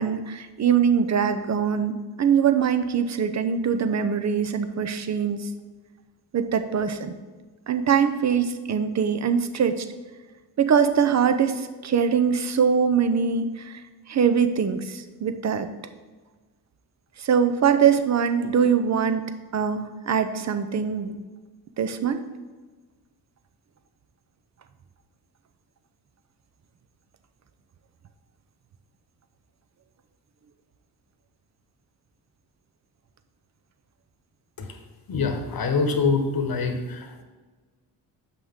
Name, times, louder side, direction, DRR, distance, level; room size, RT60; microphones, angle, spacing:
voice 1, 0.0-5.5 6.3-7.2 7.7-9.9 10.6-13.8 14.1-15.7 17.2-19.3 19.5-21.2 21.8-22.2, right 7 dB, 40° right, 9 dB, 0.7 m, -23 dB
voice 2, 35.1-37.2, left 4 dB, 55° left, 6 dB, 1.2 m, -25 dB
7.2 x 5.9 x 3.7 m, 1.3 s
supercardioid pair, 60°, 43 cm